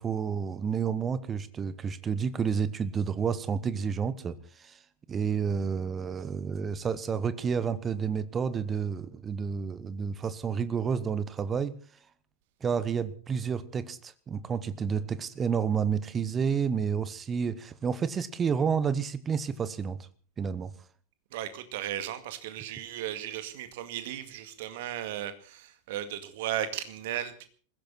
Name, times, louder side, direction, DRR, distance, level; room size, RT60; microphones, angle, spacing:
voice 1, 0.0-4.8 5.1-11.7 12.6-20.0 20.4-20.7, right 6 dB, 20° right, 1.2 m, -30 dB
voice 2, 21.3-27.5, right 11 dB, 50° right, 2.1 m, -35 dB
21.0 x 16.0 x 4.2 m
figure-of-eight pair, 90°, 0 cm